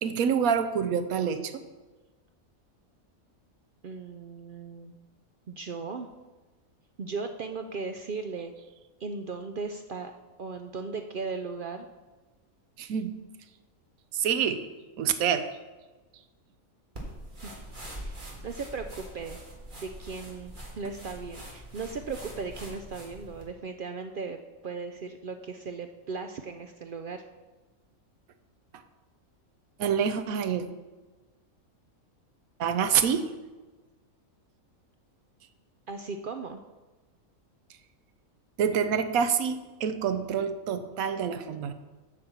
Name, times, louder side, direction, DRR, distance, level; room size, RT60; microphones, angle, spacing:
voice 1, 0.0-1.5 12.8-13.2 14.1-14.6 15.0-15.5 29.8-30.6 32.6-33.2 38.6-41.7, right 7 dB, 80° right, 10 dB, 1.1 m, -27 dB
voice 2, 3.8-5.0 5.5-6.1 7.0-8.5 9.0-10.1 10.4-11.9 17.4-17.5 17.9-19.4 19.7-27.3 35.9-36.6, right 4 dB, 65° right, 6 dB, 0.5 m, -37 dB
sound 1, 17.0-23.5, right 1 dB, 35° right, 1.9 m, -43 dB
8.4 x 5.2 x 7.1 m, 1.2 s
omnidirectional pair, 1.4 m